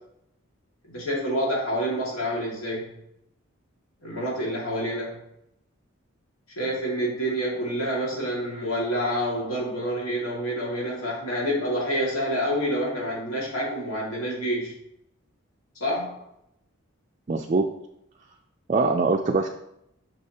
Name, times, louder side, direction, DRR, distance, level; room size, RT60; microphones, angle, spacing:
voice 1, 0.9-2.8 4.0-5.1 6.6-14.7 15.8-16.2, equal, 85° left, -3 dB, 2.2 m, -28 dB
voice 2, 17.3-17.7 18.7-19.5, right 3 dB, 35° right, 2 dB, 0.3 m, -22 dB
6.3 x 6.0 x 2.9 m, 0.78 s
head